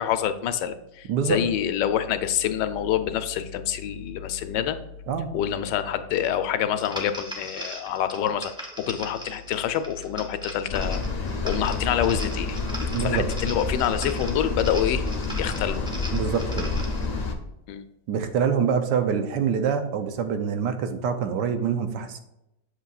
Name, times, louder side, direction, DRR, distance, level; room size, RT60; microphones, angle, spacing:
voice 1, 0.0-4.8 5.3-11.0 11.4-12.6 13.0-15.0 15.4-15.8 17.7-17.8, left 10 dB, 80° left, 10 dB, 1.2 m, -26 dB
voice 2, 1.1-1.4 5.1-5.3 12.9-13.2 16.1-16.7 18.1-22.2, right 7 dB, 80° right, 8 dB, 1.3 m, -25 dB
sound 1, 6.8-17.1, right 1 dB, 5° right, 0.6 m, -39 dB
sound 2, 10.7-17.3, left 3 dB, 60° left, 0.4 m, -29 dB
8.1 x 6.4 x 2.4 m, 0.86 s
omnidirectional pair, 1.9 m